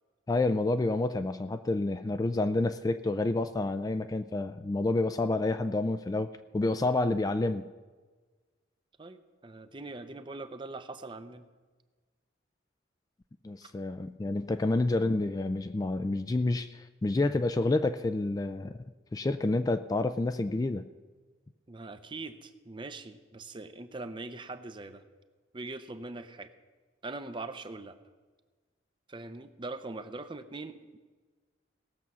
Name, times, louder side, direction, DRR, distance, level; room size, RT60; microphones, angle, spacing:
voice 1, 0.3-7.7 13.4-18.8 19.1-20.8, left 2 dB, 20° left, 10 dB, 0.3 m, -29 dB
voice 2, 9.0-11.4 14.4-14.5 21.7-25.0 25.5-26.5 27.0-28.0 29.1-31.0, right 2 dB, 25° right, 10 dB, 0.6 m, -42 dB
18.0 x 7.0 x 6.1 m, 1.4 s
head